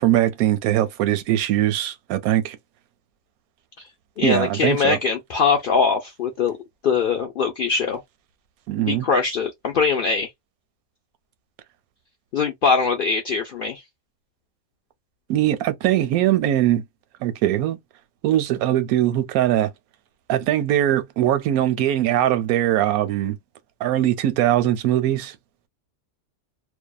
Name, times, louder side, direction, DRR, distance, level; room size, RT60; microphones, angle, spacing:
voice 1, 0.0-2.6 4.2-5.0 8.7-9.1 15.3-16.8 17.2-17.8 18.2-19.7 20.3-23.4 23.8-25.4, right 12 dB, 90° right, 1.0 m, -21 dB
voice 2, 4.2-6.5 6.8-8.0 8.9-10.3 12.3-13.8, left 5 dB, 70° left, 0.5 m, -22 dB
2.6 x 2.2 x 2.2 m
omnidirectional pair, 1.5 m